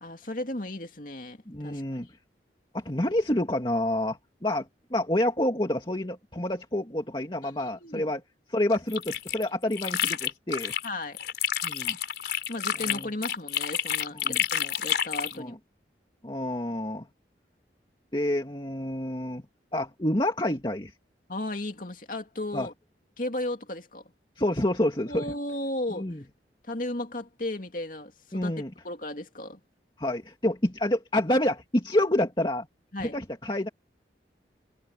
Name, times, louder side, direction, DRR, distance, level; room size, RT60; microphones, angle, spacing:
voice 1, 0.0-2.0 7.4-8.1 10.8-11.2 12.5-15.6 21.3-22.7 23.2-24.1 25.1-26.1 26.6-28.5 28.8-29.6 32.9-33.2, left 1 dB, 50° left, 2.5 m, -35 dB
voice 2, 1.5-2.1 2.7-8.2 8.5-10.7 11.6-12.0 12.9-13.1 14.2-14.4 15.4-15.6 16.2-17.1 18.1-19.4 19.7-20.9 22.5-22.7 24.4-25.3 25.9-26.2 28.3-28.7 30.0-32.7 33.0-33.7, left 1 dB, 25° left, 2.3 m, -28 dB
sound 1, 8.7-10.9 11.2-15.4, left 9 dB, 65° left, 4.0 m, -29 dB
head